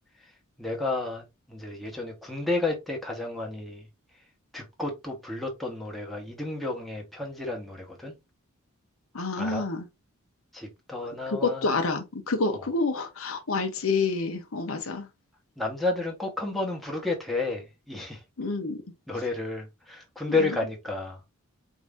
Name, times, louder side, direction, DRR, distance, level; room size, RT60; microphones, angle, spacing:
voice 1, 0.2-3.9 4.1-4.2 4.5-8.1 9.3-9.7 10.5-11.8 12.5-12.6 15.6-18.2 19.1-21.2, left 2 dB, ahead, 1.1 m, -32 dB
voice 2, 9.1-9.9 11.3-15.1 18.4-18.8 20.3-20.4, left 3 dB, 65° left, 0.9 m, -28 dB
4.8 x 2.7 x 3.5 m
head